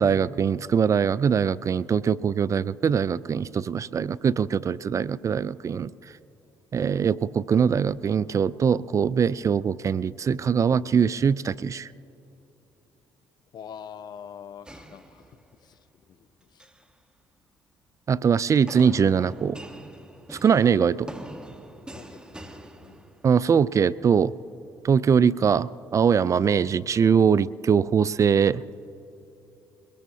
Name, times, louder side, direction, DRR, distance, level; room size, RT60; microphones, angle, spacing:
voice 1, 0.0-5.9 6.7-11.9 18.1-19.6 20.3-21.1 23.2-24.3 24.8-28.6, right 7 dB, 40° right, 19 dB, 0.3 m, -22 dB
voice 2, 13.5-15.2 15.6-15.8 16.2-16.3 16.5-16.6 21.9-22.2 22.5-23.1, left 8 dB, 55° left, 14 dB, 0.6 m, -44 dB
sound 1, 14.7-15.7 16.4-16.9 18.7-23.5, right 1 dB, 10° right, 1.3 m, -43 dB
22.5 x 21.0 x 2.8 m, 2.9 s
supercardioid pair, 75°, 8 cm